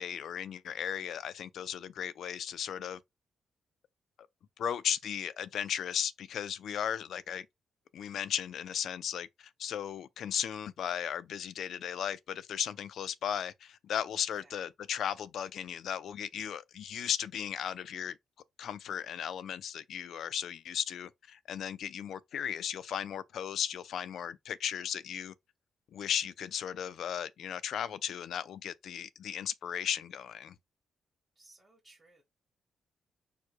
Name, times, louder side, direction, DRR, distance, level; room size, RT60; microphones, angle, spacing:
voice 1, 0.0-3.0 4.6-7.5 7.9-18.2 18.6-25.3 25.9-30.6, left 9 dB, 65° left, 0.4 m, -36 dB
voice 2, 14.3-14.6 31.3-32.2, right 2 dB, 20° right, 1.1 m, -61 dB
4.6 x 2.2 x 4.6 m
cardioid pair, 155°, 0 cm